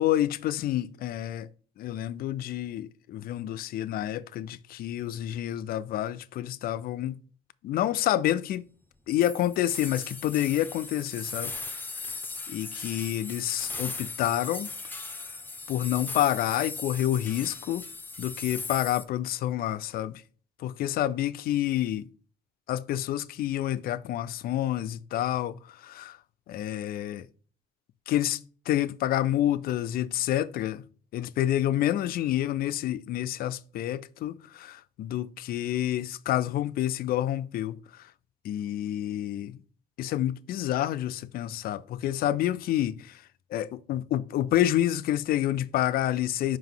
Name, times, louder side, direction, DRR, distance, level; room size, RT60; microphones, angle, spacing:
voice 1, 0.0-1.5 1.8-7.2 7.6-8.7 9.1-12.1 12.5-14.7 15.7-17.9 18.2-20.2 20.6-22.1 22.7-26.2 26.5-27.3 28.1-30.8 31.1-38.1 38.4-39.6 40.0-46.6, left 12 dB, 60° left, 0.4 m, -28 dB
sound 1, 9.2-19.0, left 3 dB, 10° left, 0.8 m, -38 dB
5.5 x 5.1 x 3.9 m
cardioid pair, 110°, 17 cm